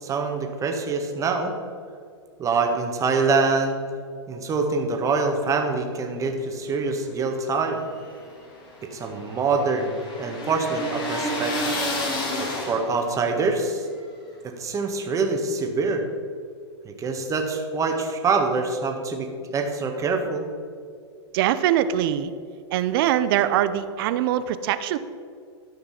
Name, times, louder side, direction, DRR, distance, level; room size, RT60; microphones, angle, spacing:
voice 1, 0.0-1.5 2.4-3.8 4.3-7.8 8.9-11.6 12.4-13.9 14.4-16.0 16.8-20.4, right 4 dB, 20° right, 3 dB, 1.5 m, -25 dB
sound 1, 7.7-13.1, left 1 dB, 30° left, 2.6 m, -30 dB
voice 2, 21.3-22.3 22.7-25.0, right 11 dB, 55° right, 13 dB, 0.6 m, -22 dB
12.5 x 5.8 x 5.8 m, 2.2 s
hypercardioid pair, 120°, 15 cm